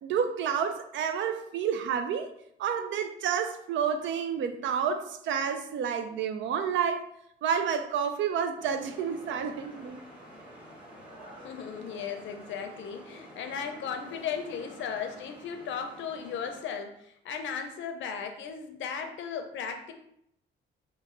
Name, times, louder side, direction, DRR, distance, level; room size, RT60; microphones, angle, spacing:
voice 1, 0.0-2.3 2.6-7.1 7.4-10.0, right 7 dB, 70° right, 0.4 m, -29 dB
sound 1, 8.6-16.6, equal, 5° right, 1.0 m, -49 dB
voice 2, 11.4-19.9, left 7 dB, 70° left, 0.5 m, -36 dB
3.1 x 2.2 x 3.7 m
cardioid pair, 90°, 20 cm